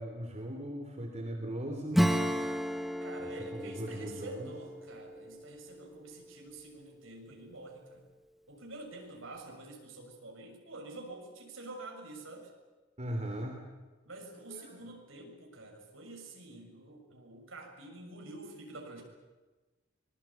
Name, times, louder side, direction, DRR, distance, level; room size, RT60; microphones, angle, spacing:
voice 1, 0.0-2.1 3.2-4.5 13.0-13.6 14.5-14.8, right 1 dB, 35° right, 3 dB, 3.1 m, -39 dB
Acoustic guitar / Strum, 1.9-6.2, equal, ahead, 1.3 m, -33 dB
voice 2, 3.0-8.1 8.5-12.5 14.0-19.0, right 2 dB, 80° right, 2 dB, 6.6 m, -47 dB
24.5 x 22.0 x 8.6 m, 1.2 s
head